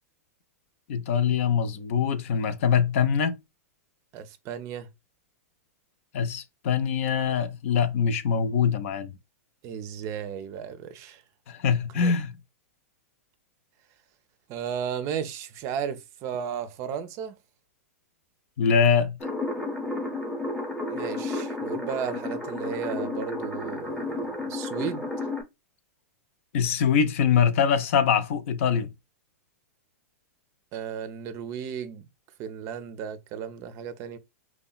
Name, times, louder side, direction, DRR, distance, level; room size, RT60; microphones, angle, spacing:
voice 1, 0.9-3.3 6.1-9.1 11.5-12.3 18.6-19.2 26.5-28.9, left 7 dB, 60° left, 0.4 m, -23 dB
voice 2, 4.1-4.9 9.6-11.2 11.9-12.1 14.5-17.4 20.9-25.0 30.7-32.1 32.4-34.2, right 8 dB, 40° right, 0.4 m, -34 dB
sound 1, 19.2-25.4, left 2 dB, ahead, 0.8 m, -32 dB
2.8 x 2.1 x 2.3 m
hypercardioid pair, 115°, 8 cm